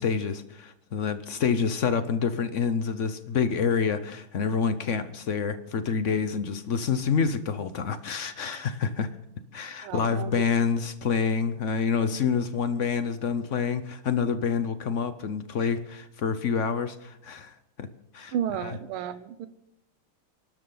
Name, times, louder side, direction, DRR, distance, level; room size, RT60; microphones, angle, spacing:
voice 1, 0.0-9.1 9.5-17.9 18.1-18.3 18.6-18.8, left 6 dB, 60° left, 11 dB, 0.8 m, -27 dB
voice 2, 9.8-10.4 18.3-19.5, right 9 dB, 80° right, 12 dB, 1.7 m, -32 dB
29.0 x 12.5 x 3.9 m, 0.85 s
omnidirectional pair, 2.3 m